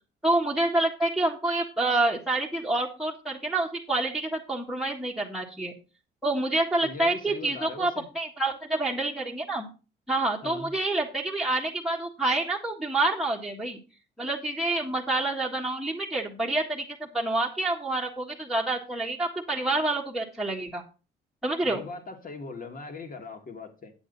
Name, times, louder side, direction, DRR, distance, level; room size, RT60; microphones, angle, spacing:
voice 1, 0.2-5.7 6.2-9.7 10.1-13.8 14.2-20.8 21.4-21.8, right 2 dB, ahead, 1.6 m, -28 dB
voice 2, 6.8-8.1 10.4-10.7 21.6-23.9, left 4 dB, 45° left, 2.2 m, -40 dB
8.8 x 8.0 x 4.1 m
cardioid pair, 90°, 20 cm